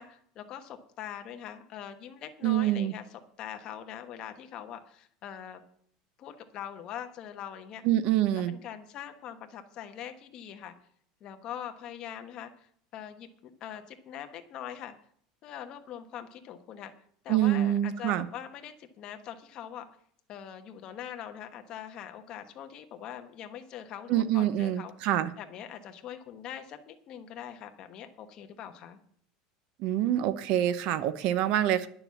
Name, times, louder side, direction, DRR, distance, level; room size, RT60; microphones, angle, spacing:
voice 1, 0.0-5.6 6.2-7.8 8.3-10.7 11.2-12.7 12.9-14.9 15.4-16.9 17.2-19.9 20.3-24.9 25.4-29.0, left 9 dB, 35° left, 6 dB, 1.1 m, -42 dB
voice 2, 2.4-2.9 7.8-8.5 17.3-18.3 24.1-25.3 29.8-31.9, right 12 dB, 45° right, 15 dB, 0.7 m, -26 dB
11.0 x 7.0 x 7.1 m, 0.63 s
cardioid pair, 175°, 2 cm